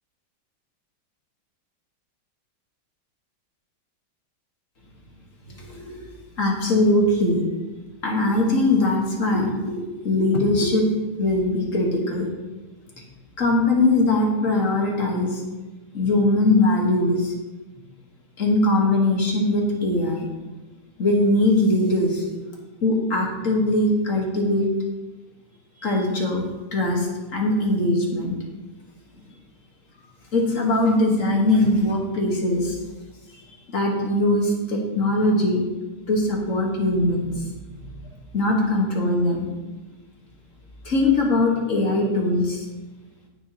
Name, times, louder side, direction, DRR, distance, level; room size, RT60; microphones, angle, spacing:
voice 1, 5.6-5.9 6.4-7.4 8.0-10.9 11.2-12.3 13.4-15.4 15.9-17.3 18.4-20.3 21.0-22.3 22.8-24.7 25.8-26.4 26.7-28.4 30.3-32.8 33.7-35.6 36.1-37.4 37.8-37.9 38.3-39.5 40.9-42.6, left 2 dB, 40° left, -1 dB, 1.7 m, -21 dB
16.0 x 6.0 x 3.0 m, 1.2 s
omnidirectional pair, 2.3 m